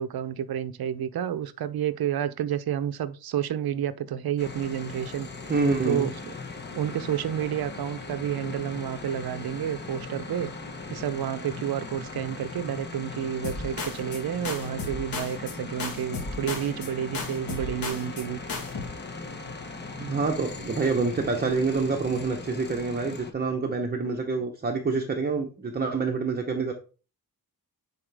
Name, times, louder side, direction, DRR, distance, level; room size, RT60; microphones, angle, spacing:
voice 1, 0.0-5.3 5.8-6.3 6.7-10.5 10.9-18.4, right 10 dB, 80° right, 0.7 m, -30 dB
sound 1, 4.4-23.3, left 3 dB, 30° left, 1.0 m, -39 dB
voice 2, 5.5-6.1 20.0-26.7, right 4 dB, 25° right, 0.8 m, -27 dB
sound 2, 13.4-14.2 14.4-15.5 15.8-16.9 17.1-18.2 18.5-18.8, left 3 dB, 70° left, 1.8 m, -34 dB
9.9 x 4.3 x 3.4 m
wide cardioid pair, 175°, 37 cm